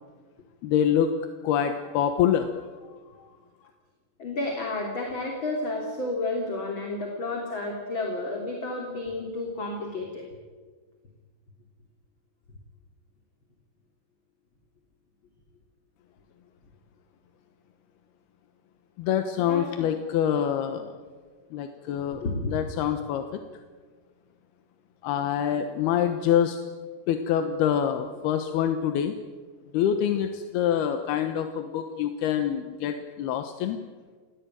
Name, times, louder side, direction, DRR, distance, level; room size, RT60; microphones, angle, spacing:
voice 1, 0.6-1.1 1.4-2.6 3.2-3.3 19.0-21.0 21.5-22.2 22.5-23.2 25.0-26.6 27.1-29.2 29.7-33.8, left 9 dB, 85° left, 7 dB, 3.2 m, -25 dB
voice 2, 4.2-10.2 19.4-19.9 22.2-22.5, left 2 dB, 35° left, 0 dB, 3.7 m, -31 dB
30.0 x 18.5 x 9.3 m, 1.5 s
omnidirectional pair, 4.4 m